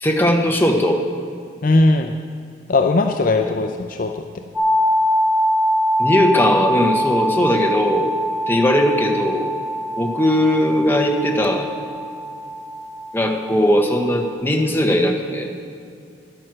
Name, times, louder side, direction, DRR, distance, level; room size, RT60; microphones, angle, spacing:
voice 1, 0.0-1.0 3.6-3.7 6.0-8.1 8.5-9.5 10.0-11.7 13.1-15.5, left 1 dB, 10° left, 1 dB, 1.1 m, -18 dB
voice 2, 1.6-2.1 2.7-4.2, left 2 dB, 45° left, 5 dB, 0.5 m, -18 dB
sound 1, 4.5-14.3, equal, 5° right, 2.1 m, -23 dB
11.0 x 9.2 x 6.3 m, 2.5 s
head